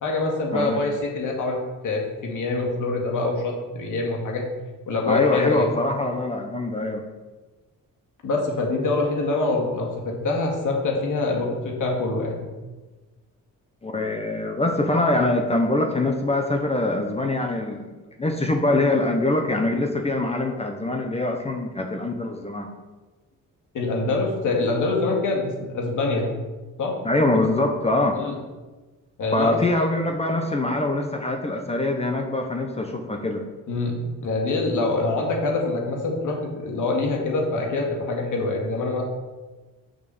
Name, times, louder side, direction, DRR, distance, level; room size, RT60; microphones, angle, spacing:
voice 1, 0.0-4.5 4.9-5.7 8.2-12.5 23.7-26.4 26.8-27.0 28.1-28.4 29.2-29.6 33.7-39.0, left 3 dB, 60° left, 0 dB, 2.2 m, -25 dB
voice 2, 5.1-7.0 13.8-17.9 18.2-22.7 25.0-25.1 27.0-28.2 29.3-33.4, left 2 dB, 20° left, 3 dB, 0.8 m, -23 dB
6.5 x 6.2 x 6.9 m, 1.2 s
cardioid pair, 115°, 34 cm